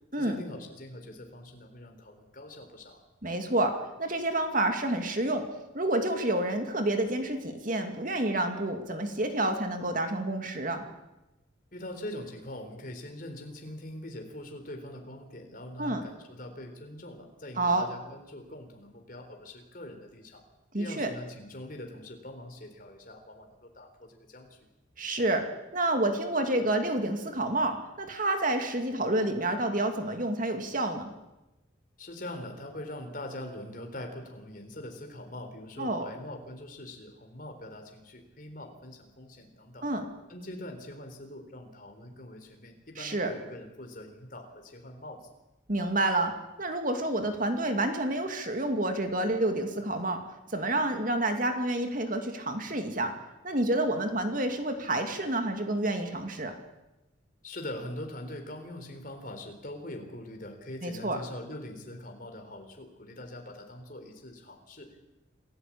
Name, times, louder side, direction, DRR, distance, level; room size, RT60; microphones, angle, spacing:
voice 1, 0.1-3.0 11.7-20.4 20.7-24.7 32.0-39.9 40.3-45.3 57.4-65.1, left 1 dB, 45° left, 4 dB, 3.9 m, -43 dB
voice 2, 3.2-5.5 5.7-10.8 15.8-16.0 17.6-17.9 20.7-21.1 25.0-25.4 25.7-31.1 35.8-36.1 39.8-40.1 43.0-43.3 45.7-46.3 46.6-50.2 50.5-53.1 53.4-56.5 60.8-61.2, right 1 dB, 45° right, 5 dB, 2.5 m, -29 dB
27.5 x 15.5 x 8.7 m, 1.0 s
head